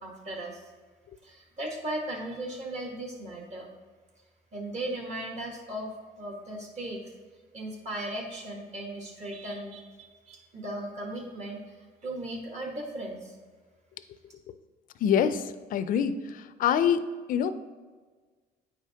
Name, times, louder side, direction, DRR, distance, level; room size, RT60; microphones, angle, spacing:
voice 1, 0.0-0.6 1.2-3.7 4.5-7.0 7.5-11.7 12.0-13.3, right 1 dB, 40° right, 1 dB, 1.2 m, -37 dB
voice 2, 15.0-17.5, left 8 dB, 55° left, 12 dB, 0.4 m, -26 dB
8.9 x 4.9 x 2.8 m, 1.4 s
cardioid pair, 110°, 17 cm